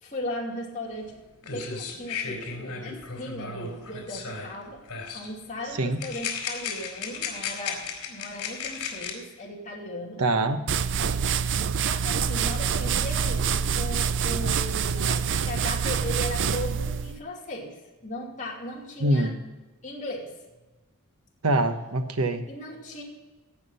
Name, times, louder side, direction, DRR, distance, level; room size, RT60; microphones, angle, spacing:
voice 1, 0.0-1.2 1.4-4.8 5.1-10.2 11.8-17.8 18.0-19.3 19.8-20.3 22.5-23.0, left 1 dB, 35° left, -3 dB, 2.6 m, -37 dB
sound 1, 1.1-1.2 1.4-4.6 4.9-5.3 6.0-9.1, left 6 dB, 70° left, 3.1 m, -35 dB
voice 2, 10.2-10.6 19.0-19.4 21.4-22.4, right 2 dB, 75° right, 7 dB, 1.2 m, -24 dB
sound 2, 10.7-17.2, right 6 dB, 55° right, 0.5 m, -26 dB
17.5 x 6.0 x 5.6 m, 1.2 s
head